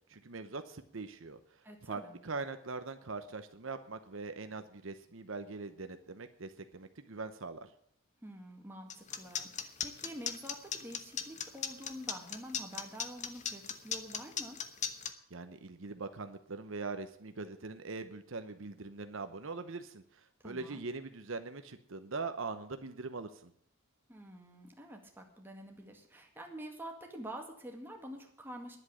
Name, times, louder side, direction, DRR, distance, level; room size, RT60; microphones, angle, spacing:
voice 1, 0.1-7.7 15.3-23.5, right 3 dB, 65° right, 9 dB, 0.9 m, -42 dB
voice 2, 1.6-2.1 8.2-8.9 9.2-14.6 20.4-20.9 24.1-28.8, equal, 10° right, 1 dB, 2.1 m, -47 dB
sound 1, 8.9-15.1, left 8 dB, 35° left, 1.0 m, -36 dB
11.0 x 7.9 x 9.9 m, 0.64 s
head